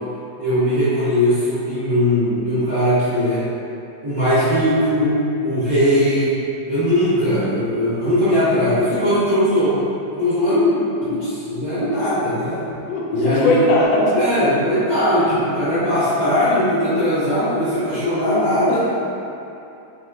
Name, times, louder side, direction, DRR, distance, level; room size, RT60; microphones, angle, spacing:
voice 1, 0.4-3.5 4.0-6.4 6.7-9.8 10.1-12.6 13.1-13.6 14.1-18.9, equal, 60° right, -16 dB, 1.4 m, -19 dB
voice 2, 12.9-14.1 18.7-18.9, left 1 dB, 85° left, -3 dB, 2.4 m, -19 dB
6.0 x 3.3 x 2.3 m, 2.9 s
omnidirectional pair, 4.3 m